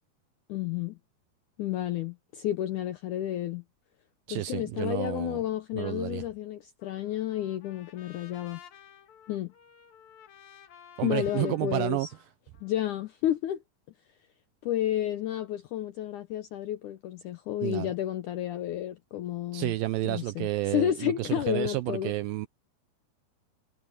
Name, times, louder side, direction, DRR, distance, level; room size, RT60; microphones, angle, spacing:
voice 1, 0.5-1.0 1.6-3.6 4.3-8.6 9.3-9.5 11.0-12.1 12.6-13.6 14.6-19.8 20.0-22.1, left 12 dB, 80° left, 1.8 m, -31 dB
voice 2, 4.3-5.4 5.7-6.2 11.0-12.1 17.6-17.9 19.5-22.5, right 17 dB, 80° right, 2.1 m, -30 dB
Trumpet, 6.8-13.1, left 9 dB, 55° left, 2.7 m, -54 dB
omnidirectional pair, 4.6 m